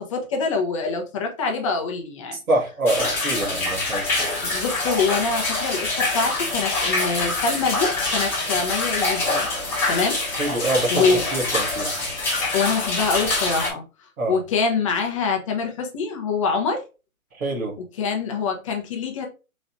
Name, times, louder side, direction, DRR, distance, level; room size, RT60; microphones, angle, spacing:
voice 1, 0.0-2.4 4.4-9.5 9.9-10.2 10.9-11.2 12.5-13.8 14.3-16.8 17.8-19.3, left 4 dB, 25° left, 0.6 m, -25 dB
voice 2, 2.5-4.3 10.4-11.1 11.3-11.9 14.2-14.4 17.3-17.8, right 2 dB, 75° right, 1.7 m, -25 dB
sound 1, 2.9-13.7, left 2 dB, 5° left, 1.0 m, -25 dB
4.0 x 3.0 x 2.5 m
hypercardioid pair, 145°, 43 cm